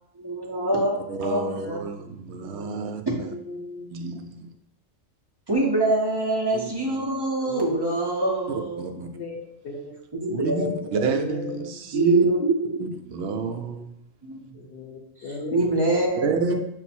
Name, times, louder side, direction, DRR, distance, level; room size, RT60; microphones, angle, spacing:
voice 1, 0.2-1.5 3.1-3.2 5.5-8.9 10.2-11.0 11.9-12.8 13.5-13.6 14.2-14.4 15.5-16.5, right 2 dB, 30° right, 0.4 m, -24 dB
voice 2, 1.1-3.3 3.9-4.5 6.5-7.0 8.8-9.1 10.3-12.3 12.8-13.9 16.2-16.5, right 4 dB, 65° right, 0.8 m, -29 dB
voice 3, 3.2-4.2 7.4-8.0 8.8-10.0 11.0-12.3 14.5-16.1, left 3 dB, 60° left, 0.7 m, -38 dB
5.7 x 2.1 x 4.3 m
omnidirectional pair, 1.3 m